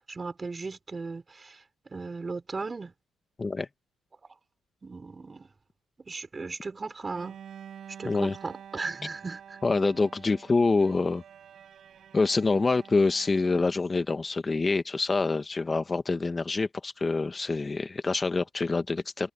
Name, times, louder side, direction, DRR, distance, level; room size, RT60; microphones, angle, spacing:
voice 1, 0.1-1.6 1.9-2.9 4.8-5.5 6.1-7.4 8.0-9.6, right 4 dB, 30° right, 5.4 m, -37 dB
Bowed string instrument, 7.1-13.9, right 8 dB, 60° right, 7.8 m, -49 dB
voice 2, 8.0-8.3 9.6-11.2 12.1-19.3, left 3 dB, 25° left, 1.7 m, -26 dB
cardioid pair, 90°, 0 cm